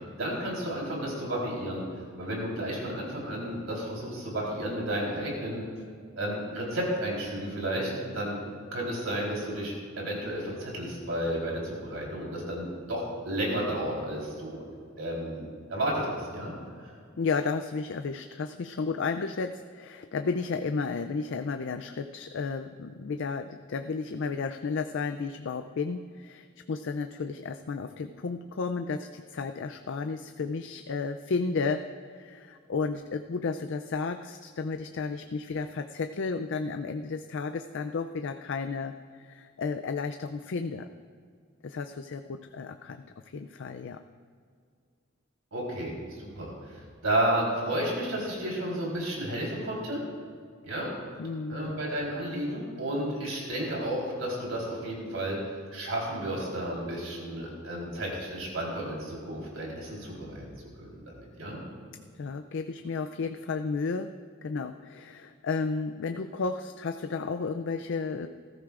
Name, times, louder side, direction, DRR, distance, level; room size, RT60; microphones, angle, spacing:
voice 1, 0.2-1.8 2.2-5.6 6.2-8.4 8.7-14.6 15.0-16.5 45.5-50.0 50.6-50.9 51.5-60.4 60.8-61.6, right 1 dB, 75° right, -3 dB, 3.7 m, -32 dB
voice 2, 17.2-31.8 32.1-40.9 41.6-43.1 43.3-44.0 51.2-51.7 62.1-64.1 64.4-68.3, left 4 dB, 65° left, 8 dB, 0.4 m, -33 dB
19.5 x 14.0 x 2.5 m, 2.2 s
head